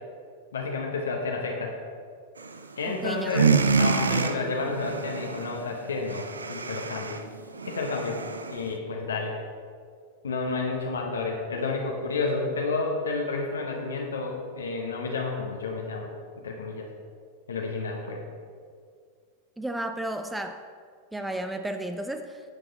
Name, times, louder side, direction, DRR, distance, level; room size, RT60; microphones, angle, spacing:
voice 1, 0.5-1.8 2.8-3.5 3.7-7.2 7.6-8.2 8.5-9.4 10.2-16.1 16.4-16.9 17.5-18.2, left 3 dB, 70° left, 0 dB, 1.0 m, -30 dB
sound 1, 2.4-2.9 3.2-8.8, right 5 dB, 75° right, 0.4 m, -27 dB
voice 2, 2.9-3.4 19.6-20.6 21.1-22.4, right 1 dB, 5° right, 7 dB, 0.4 m, -33 dB
9.7 x 6.8 x 4.0 m, 2.1 s
figure-of-eight pair, 90°, 0 cm